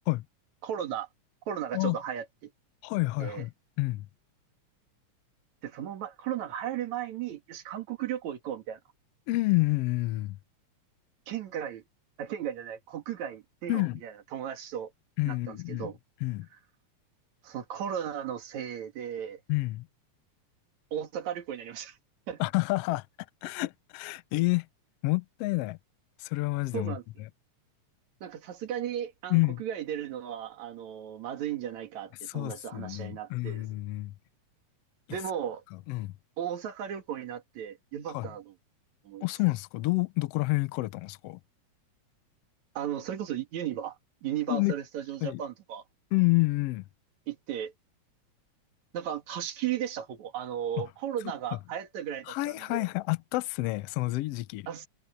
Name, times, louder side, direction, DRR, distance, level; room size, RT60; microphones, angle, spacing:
voice 1, 0.6-1.1 1.5-2.5 3.2-3.4 5.6-8.8 11.3-11.8 12.2-14.9 15.3-16.0 17.4-19.4 20.9-22.0 22.3-22.4 26.7-27.0 28.2-33.7 35.1-35.6 36.4-38.5 39.0-39.3 42.7-45.8 47.3-47.7 48.9-52.9 54.7-54.9, right 10 dB, 70° right, 3.2 m, -35 dB
voice 2, 2.8-3.5 3.8-4.1 9.3-10.4 13.7-14.0 15.2-15.9 16.2-16.5 19.5-19.9 22.4-23.1 23.4-24.7 25.0-25.8 26.2-27.3 29.3-29.6 32.3-34.1 35.9-36.1 38.1-38.3 39.2-41.4 44.5-44.7 45.2-45.4 46.1-46.8 50.8-50.9 52.3-54.7, left 21 dB, 80° left, 1.4 m, -29 dB
omnidirectional pair, 3.4 m